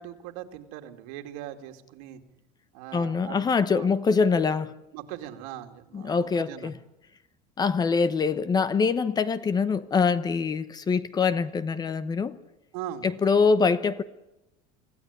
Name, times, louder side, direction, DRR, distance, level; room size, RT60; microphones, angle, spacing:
voice 1, 0.0-2.2 2.7-3.9 4.9-6.7 12.7-13.1, right 12 dB, 80° right, 6 dB, 2.6 m, -40 dB
voice 2, 2.9-4.7 5.9-6.7 7.6-12.4 13.0-14.0, left 5 dB, 20° left, 15 dB, 1.0 m, -24 dB
25.5 x 15.5 x 9.8 m, 0.92 s
cardioid pair, 150°, 19 cm